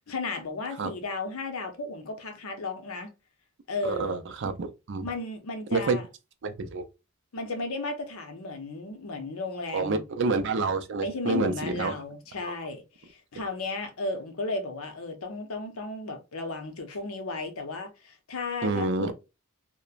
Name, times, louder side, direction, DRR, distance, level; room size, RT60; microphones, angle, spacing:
voice 1, 0.1-3.1 3.7-4.2 5.0-6.0 7.3-10.0 11.0-19.1, left 3 dB, 70° left, 0.7 m, -34 dB
voice 2, 3.8-5.1 5.7-6.0 6.4-6.8 9.7-11.9 12.5-12.6 18.6-19.1, right 3 dB, 55° right, 0.5 m, -28 dB
2.9 x 2.1 x 2.4 m
head